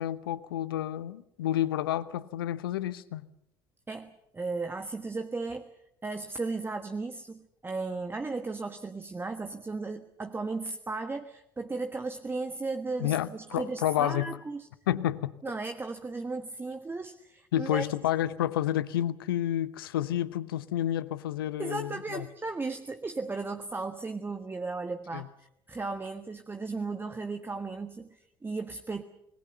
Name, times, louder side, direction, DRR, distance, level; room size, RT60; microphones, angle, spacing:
voice 1, 0.0-3.3 13.0-14.4 14.9-15.3 17.5-22.3 25.1-25.3, left 12 dB, 75° left, 1.0 m, -30 dB
voice 2, 3.9-5.7 6.0-14.7 15.4-17.9 21.6-29.0, right 3 dB, 20° right, 1.4 m, -35 dB
26.5 x 20.5 x 7.0 m
figure-of-eight pair, 60°, 12 cm